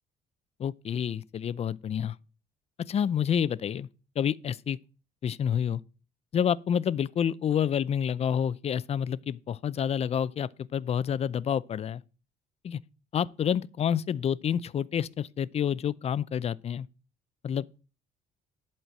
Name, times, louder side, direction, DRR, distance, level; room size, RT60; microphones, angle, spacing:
voice 1, 0.6-2.2 2.9-3.9 4.2-4.8 5.2-5.8 6.3-12.0 12.6-12.8 13.1-16.9 17.4-17.7, left 8 dB, 40° left, 0.5 m, -28 dB
11.5 x 4.4 x 7.7 m
cardioid pair, 110°, 17 cm